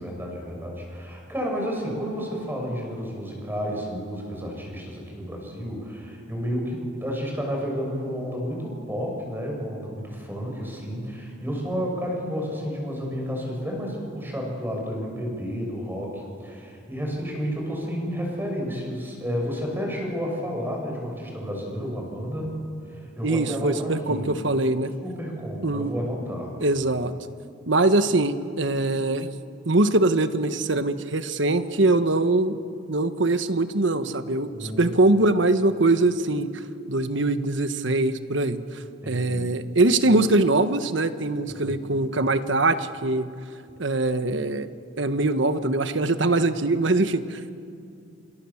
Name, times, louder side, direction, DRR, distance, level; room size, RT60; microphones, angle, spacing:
voice 1, 0.0-22.5 22.8-24.3 25.0-26.6 34.5-34.9 39.0-39.5 41.5-41.8, equal, 10° right, 0 dB, 6.7 m, -31 dB
voice 2, 23.2-24.9 25.6-25.9 26.6-27.1 27.7-29.3 29.6-32.6 32.9-36.5 36.9-38.6 39.1-43.3 43.8-44.7 45.0-47.4, right 2 dB, 65° right, 10 dB, 1.3 m, -22 dB
28.0 x 27.5 x 7.2 m, 2.4 s
head